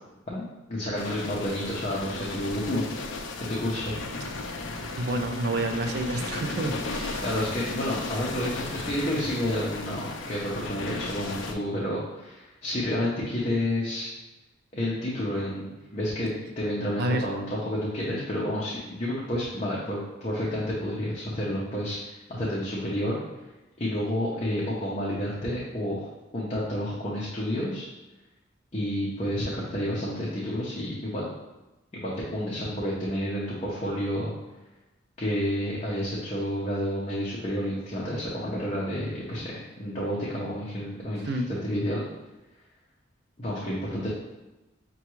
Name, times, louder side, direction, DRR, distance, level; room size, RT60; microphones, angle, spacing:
voice 1, 0.7-3.1 3.4-4.0 7.2-14.1 14.7-23.2 23.8-26.1 26.3-27.9 28.7-31.3 32.0-34.3 35.2-42.1 43.4-44.1, left 1 dB, 35° left, -6 dB, 0.7 m, -30 dB
sound 1, 1.0-11.5, left 3 dB, 75° left, 0.4 m, -35 dB
voice 2, 5.0-7.2 17.0-17.3 41.3-41.5, right 1 dB, 55° right, 5 dB, 0.4 m, -29 dB
5.8 x 2.3 x 3.0 m, 1.0 s
head